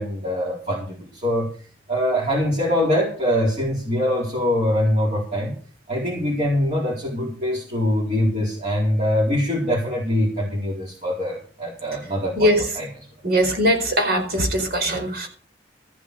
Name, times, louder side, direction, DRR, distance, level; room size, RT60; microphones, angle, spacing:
voice 1, 0.0-1.5 1.9-5.5 5.9-13.1, equal, 40° right, -5 dB, 4.4 m, -23 dB
voice 2, 12.4-12.8 13.2-15.3, equal, 60° right, 4 dB, 4.5 m, -21 dB
14.5 x 8.9 x 6.7 m, 0.42 s
head